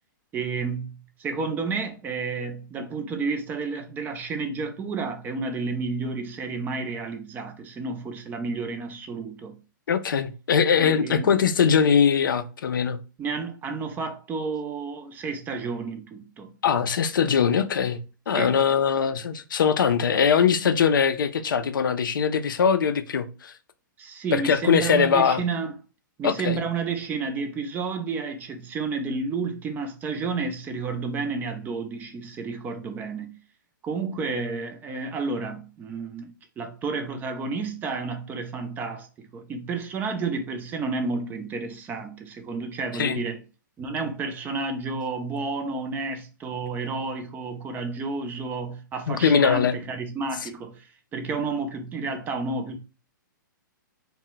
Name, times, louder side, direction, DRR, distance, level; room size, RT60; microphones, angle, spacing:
voice 1, 0.3-9.6 10.8-11.3 13.2-16.5 18.4-18.6 24.0-25.8 26.2-33.4 33.8-43.4 43.8-52.8, right 4 dB, 15° right, 0.4 m, -31 dB
voice 2, 9.9-13.0 16.6-18.0 18.3-23.5 24.3-25.4 26.2-26.6 42.9-43.2 49.1-49.8, left 7 dB, 80° left, 0.4 m, -21 dB
2.2 x 2.1 x 3.7 m
hypercardioid pair, 130°, 11 cm